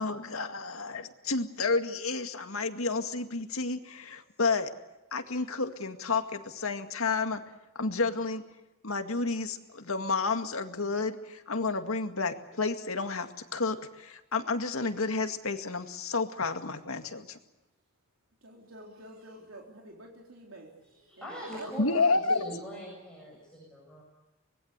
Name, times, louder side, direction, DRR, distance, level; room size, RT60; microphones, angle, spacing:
voice 1, 0.0-4.7 5.1-7.4 7.8-8.4 8.8-17.4 21.8-22.4, left 3 dB, 85° left, 7 dB, 2.1 m, -30 dB
voice 2, 18.4-21.7, right 1 dB, 75° right, 0 dB, 3.7 m, -48 dB
voice 3, 21.1-24.0, equal, 5° left, -4 dB, 7.4 m, -41 dB
25.0 x 20.5 x 8.2 m, 1.0 s
head